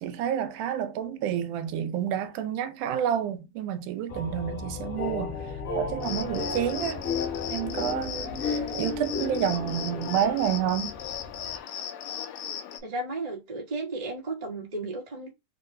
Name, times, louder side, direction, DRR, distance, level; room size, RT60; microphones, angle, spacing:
voice 1, 0.0-5.4 5.8-7.0 7.5-10.9, right 9 dB, 85° right, 2.2 m, -29 dB
sound 1, 4.1-11.6, left 4 dB, 55° left, 0.8 m, -34 dB
Cricket, 6.0-12.8, left 9 dB, 80° left, 1.3 m, -37 dB
voice 2, 12.8-15.3, right 2 dB, 55° right, 0.4 m, -34 dB
4.0 x 3.7 x 2.6 m
omnidirectional pair, 3.5 m